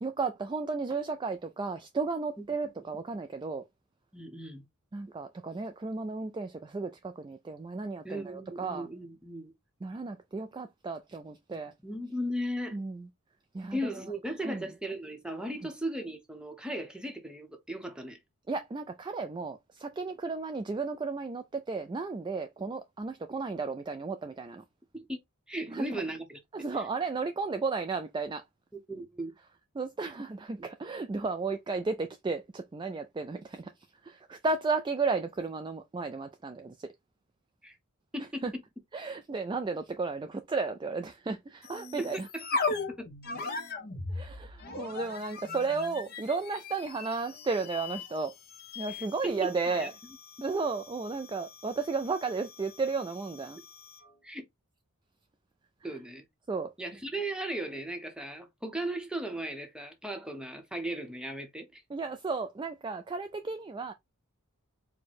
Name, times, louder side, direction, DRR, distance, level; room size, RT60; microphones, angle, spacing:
voice 1, 0.0-3.6 4.9-8.9 9.8-11.7 12.7-13.1 13.5-13.8 14.4-14.6 18.5-24.6 25.7-26.0 26.5-28.4 29.7-33.7 34.0-36.9 38.2-38.5 38.9-42.3 44.1-48.3 48.8-49.9 50.4-53.6 56.5-56.7 61.9-63.9, right 4 dB, 20° right, 0.3 m, -34 dB
voice 2, 4.1-4.7 8.0-9.5 11.8-12.8 13.7-18.2 24.9-25.2 25.5-26.4 26.7-26.8 28.9-29.3 37.6-37.8 38.1-38.4 42.0-42.1 42.3-42.4 43.0-43.1 48.9-49.0 49.2-49.5 49.8-49.9 54.2-54.5 55.8-56.2 56.8-61.8, right 1 dB, 5° right, 0.8 m, -36 dB
sound 1, 41.6-54.1, left 3 dB, 45° left, 1.0 m, -39 dB
4.7 x 2.1 x 4.1 m
head